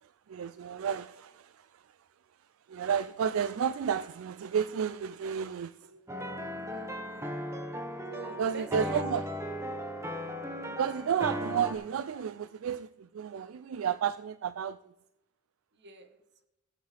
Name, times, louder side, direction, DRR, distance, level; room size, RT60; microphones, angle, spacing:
voice 1, 0.0-2.0 2.7-5.9 8.4-9.3 10.7-14.9, right 7 dB, 80° right, 0.4 m, -32 dB
sound 1, 6.1-11.7, equal, 15° right, 1.1 m, -37 dB
voice 2, 6.5-7.0 8.1-9.0 10.6-10.7 15.7-16.2, right 3 dB, 55° right, 1.3 m, -47 dB
18.0 x 7.9 x 3.4 m
head